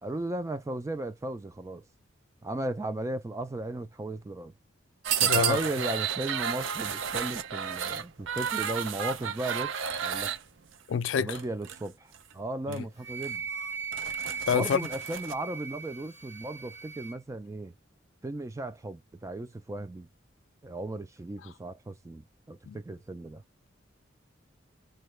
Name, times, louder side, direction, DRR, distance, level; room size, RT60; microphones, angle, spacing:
voice 1, 0.0-1.8 2.4-4.5 5.2-9.7 10.0-10.3 11.2-13.5 14.5-17.7 18.2-20.1 20.6-23.4, right 2 dB, 15° right, 0.3 m, -36 dB
sound 1, 5.0-10.4 11.3-11.8 12.1-12.3 12.7-12.8 13.2-13.3 13.7-15.3, right 8 dB, 80° right, 0.4 m, -31 dB
voice 2, 5.2-5.6 10.9-11.4 12.7-12.8 14.5-14.8 22.7-22.8, left 7 dB, 70° left, 0.3 m, -27 dB
Wind instrument woodwind instrument, 13.0-17.2, right 6 dB, 40° right, 1.3 m, -38 dB
3.7 x 2.2 x 3.1 m
head